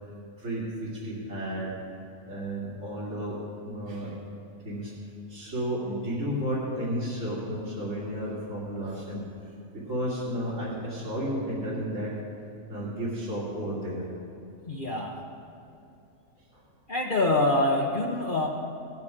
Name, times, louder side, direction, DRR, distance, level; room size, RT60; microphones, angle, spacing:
voice 1, 0.0-1.8 2.2-3.4 3.6-4.2 4.6-12.2 12.7-14.0 16.4-16.7, equal, 65° right, -10 dB, 3.1 m, -33 dB
voice 2, 14.7-15.2 16.9-18.5, left 2 dB, 40° left, -1 dB, 1.0 m, -25 dB
17.5 x 9.6 x 4.9 m, 2.8 s
omnidirectional pair, 1.4 m